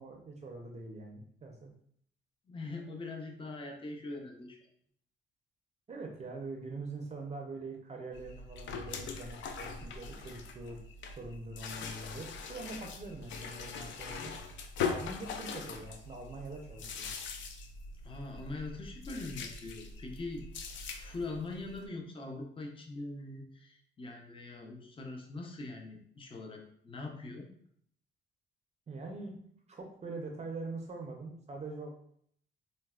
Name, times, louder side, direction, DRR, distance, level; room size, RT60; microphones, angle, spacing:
voice 1, 0.0-1.7 5.9-10.8 11.2-14.3 14.8-17.1 28.9-29.4 29.7-31.9, right 3 dB, 35° right, 1 dB, 0.5 m, -43 dB
voice 2, 2.5-4.6 18.0-20.5 20.9-27.5, left 2 dB, 25° left, 2 dB, 0.6 m, -42 dB
sound 1, 8.1-21.9, left 5 dB, 70° left, 0.4 m, -42 dB
3.9 x 2.1 x 2.3 m, 0.63 s
cardioid pair, 90°, 20 cm